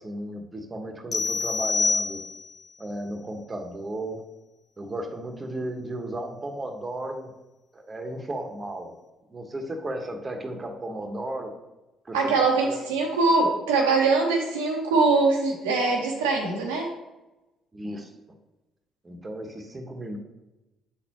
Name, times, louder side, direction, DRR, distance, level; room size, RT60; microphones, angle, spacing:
voice 1, 0.0-2.2 2.8-4.2 4.8-7.3 7.7-8.9 9.3-11.5 12.0-12.8 17.7-18.1 19.0-20.2, right 1 dB, 30° right, 4 dB, 1.2 m, -34 dB
sound 1, 1.1-2.6, left 4 dB, 45° left, 0.7 m, -26 dB
voice 2, 12.1-16.9, right 3 dB, 85° right, 0 dB, 0.9 m, -22 dB
8.2 x 4.2 x 3.0 m, 1.0 s
hypercardioid pair, 55°, 0 cm